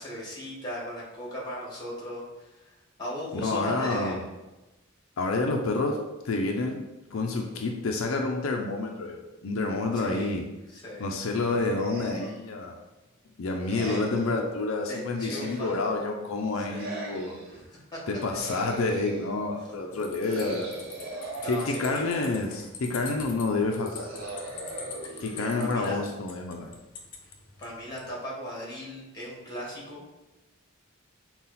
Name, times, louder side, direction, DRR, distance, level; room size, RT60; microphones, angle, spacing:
voice 1, 0.0-2.7 3.0-4.2 9.9-10.3 10.7-11.1 13.8-14.0 14.9-15.8 16.5-16.8 17.5-17.6 17.9-18.0 18.3-18.6 19.8-20.0 21.1-22.2 25.0-26.1 27.6-30.0, equal, 20° left, -4 dB, 1.5 m, -38 dB
voice 2, 3.3-4.2 5.2-6.0 6.2-6.8 7.1-10.4 11.0-12.8 13.4-17.4 18.1-20.7 21.4-24.1 25.2-26.7, left 3 dB, 80° left, 2 dB, 0.5 m, -28 dB
sound 1, 11.4-12.5 13.6-14.4 15.1-16.1 16.7-17.6 18.3-19.4 20.2-22.3 23.8-26.2, right 2 dB, 45° right, 0.9 m, -40 dB
sound 2, 19.9-28.1, left 5 dB, 40° left, 0.7 m, -45 dB
5.6 x 2.3 x 4.0 m, 1.1 s
head